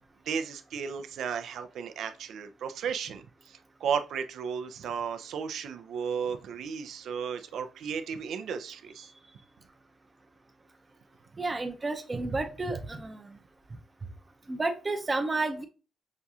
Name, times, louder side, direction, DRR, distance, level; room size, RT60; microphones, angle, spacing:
voice 1, 0.3-9.1, right 7 dB, 70° right, 9 dB, 0.5 m, -34 dB
voice 2, 11.4-13.3 14.5-15.6, right 3 dB, 20° right, 6 dB, 0.6 m, -31 dB
5.9 x 2.3 x 2.7 m, 0.33 s
cardioid pair, 140°, 0 cm